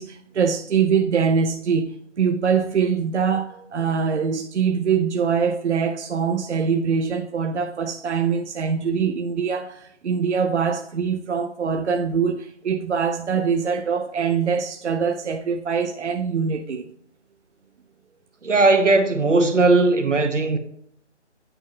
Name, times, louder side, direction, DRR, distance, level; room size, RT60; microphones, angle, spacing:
voice 1, 0.0-16.9, right 6 dB, 70° right, 0.7 m, -23 dB
voice 2, 18.4-20.6, right 3 dB, 85° right, 1.2 m, -18 dB
8.9 x 5.7 x 2.8 m
figure-of-eight pair, 150°, 36 cm